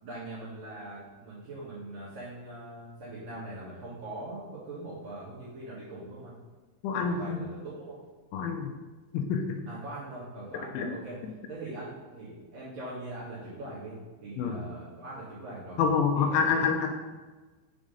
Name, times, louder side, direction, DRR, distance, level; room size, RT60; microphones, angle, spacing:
voice 1, 0.0-6.3 6.8-8.0 9.7-11.2 11.5-15.8 16.2-16.4, right 2 dB, 60° right, -9 dB, 2.6 m, -42 dB
voice 2, 6.8-7.4 8.3-8.7 9.1-9.6 10.7-10.9 14.4-14.6 15.8-16.9, left 6 dB, 85° left, 3 dB, 2.9 m, -27 dB
7.4 x 3.8 x 5.0 m, 1.3 s
omnidirectional pair, 5.5 m